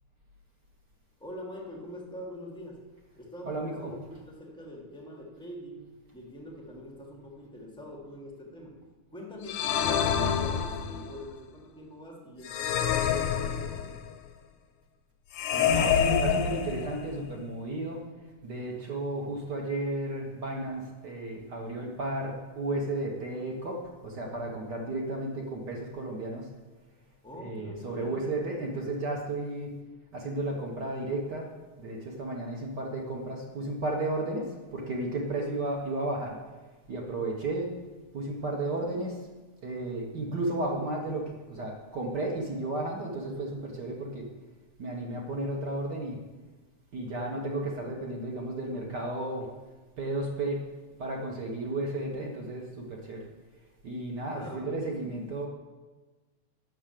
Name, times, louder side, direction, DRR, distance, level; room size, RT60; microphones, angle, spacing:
voice 1, 1.2-2.8 3.2-4.0 4.3-8.8 9.1-14.0 27.2-28.2 54.3-55.3, left 1 dB, 5° left, -2 dB, 0.3 m, -44 dB
voice 2, 3.4-3.9 15.5-18.0 18.4-26.5 27.4-29.7 30.1-31.5 31.8-36.3 36.9-37.7 38.1-39.2 39.6-44.2 44.8-46.2 46.9-49.5 50.0-50.6 51.0-53.2 53.8-55.5, right 2 dB, 60° right, 0 dB, 1.1 m, -33 dB
sound 1, 9.5-11.2 12.5-14.1 15.3-17.2, left 7 dB, 80° left, 2.0 m, -27 dB
8.7 x 6.5 x 7.5 m, 1.2 s
omnidirectional pair, 3.5 m